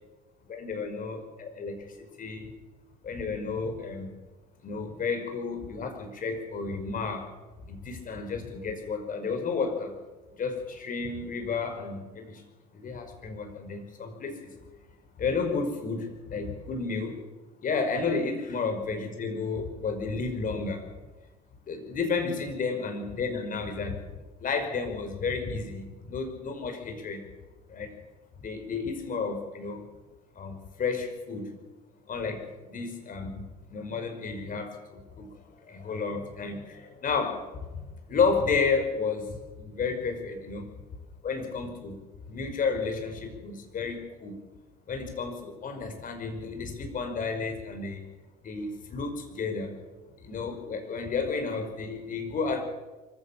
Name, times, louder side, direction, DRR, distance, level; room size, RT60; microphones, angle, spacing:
voice 1, 0.5-2.5 3.0-4.1 4.6-7.3 7.7-9.9 10.4-12.4 12.7-14.5 15.2-17.2 17.6-20.8 21.7-24.0 24.4-27.2 27.7-27.9 28.4-29.9 30.4-31.5 32.1-33.4 33.7-39.2 39.6-40.7 41.2-42.0 42.3-44.4 44.9-48.0 48.4-49.8 50.2-52.6, left 4 dB, 40° left, 6 dB, 5.2 m, -32 dB
24.0 x 15.0 x 7.4 m, 1.2 s
hypercardioid pair, 60°, 21 cm